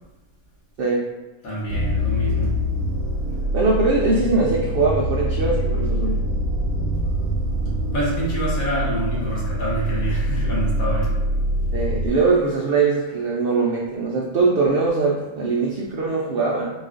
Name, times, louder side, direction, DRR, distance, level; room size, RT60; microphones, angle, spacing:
voice 1, 1.4-2.6 7.9-11.2, right 1 dB, 70° left, -7 dB, 1.7 m, -27 dB
sound 1, 1.7-12.1, equal, 60° right, 0.9 m, -24 dB
voice 2, 3.5-6.2 11.7-16.7, right 3 dB, 75° right, -2 dB, 0.5 m, -21 dB
4.0 x 2.4 x 3.6 m, 1.1 s
omnidirectional pair, 1.6 m